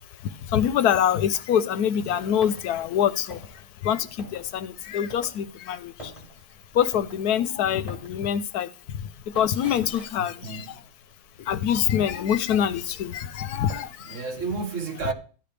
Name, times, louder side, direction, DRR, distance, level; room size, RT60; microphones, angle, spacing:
voice 1, 0.2-3.5 3.8-6.1 6.7-9.1 9.3-10.7 11.4-14.2, left 9 dB, 85° left, 1.3 m, -25 dB
sound 1, 2.4-11.5 11.8-12.8 13.1-14.0, equal, 20° left, 5.9 m, -47 dB
voice 2, 10.1-10.8 14.0-15.1, right 4 dB, 55° right, 1.6 m, -32 dB
13.5 x 10.5 x 3.4 m
omnidirectional pair, 1.6 m